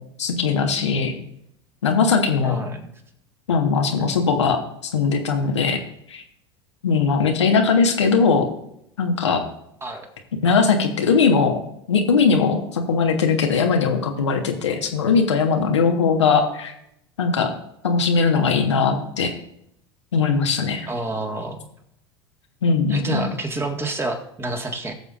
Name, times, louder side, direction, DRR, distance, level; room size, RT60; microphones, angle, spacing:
voice 1, 0.2-1.1 1.8-2.6 3.5-4.6 4.9-5.8 6.1-6.2 6.8-8.5 9.0-9.4 10.4-11.6 11.9-16.7 17.2-17.5 17.8-19.3 20.1-20.9 22.6-23.2, left 5 dB, 80° left, 3 dB, 1.3 m, -19 dB
voice 2, 2.4-2.9 9.8-10.1 20.8-21.7 22.9-24.9, right 2 dB, 15° right, 4 dB, 1.8 m, -28 dB
19.5 x 6.8 x 2.5 m, 0.76 s
hypercardioid pair, 85°, 15 cm